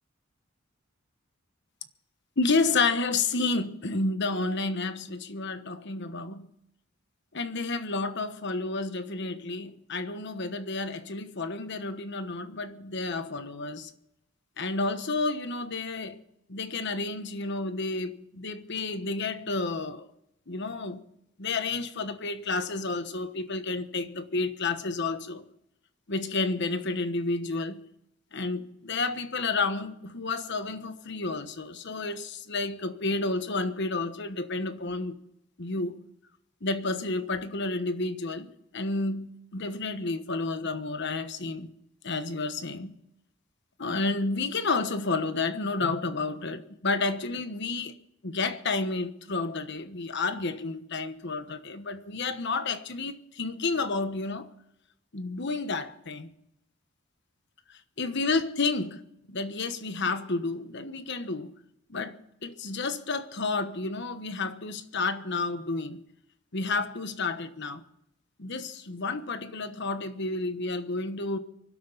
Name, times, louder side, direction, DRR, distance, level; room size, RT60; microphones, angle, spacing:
voice 1, 2.4-6.5 7.3-13.9 14.6-16.2 16.5-20.1 20.5-21.0 21.4-25.4 26.1-27.8 28.3-35.2 35.6-36.0 36.6-41.7 42.0-42.9 43.8-47.9 48.2-54.5 55.1-56.3 57.7-59.0 59.3-61.5 61.9-66.0 66.5-67.8 68.4-71.4, left 3 dB, 60° left, 1.2 m, -30 dB
24.0 x 12.5 x 4.1 m
head